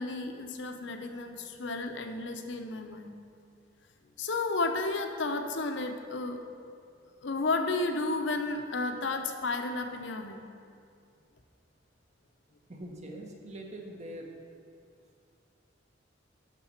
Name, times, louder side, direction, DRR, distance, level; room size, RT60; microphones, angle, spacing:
voice 1, 0.0-3.1 4.2-6.4 7.2-10.4, left 3 dB, 70° left, 6 dB, 0.7 m, -32 dB
voice 2, 12.7-14.4, right 1 dB, 35° right, 1 dB, 1.0 m, -43 dB
11.5 x 4.0 x 5.7 m, 2.4 s
head